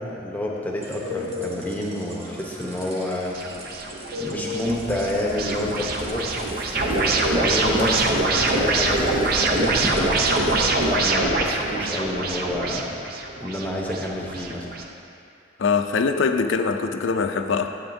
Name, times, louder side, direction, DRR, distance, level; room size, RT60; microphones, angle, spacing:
voice 1, 0.0-3.4 4.2-6.3 6.9-10.3 10.8-12.9 13.4-14.7, left 1 dB, 10° left, -2 dB, 0.9 m, -29 dB
sound 1, 0.8-11.3, left 2 dB, 30° right, 1.1 m, -36 dB
sound 2, 3.3-14.8, right 2 dB, 50° right, 0.6 m, -24 dB
sound 3, 4.7-11.0, equal, 10° right, 1.1 m, -36 dB
voice 2, 15.6-17.7, left 5 dB, 75° left, 7 dB, 0.5 m, -22 dB
12.5 x 7.8 x 2.7 m, 2.5 s
head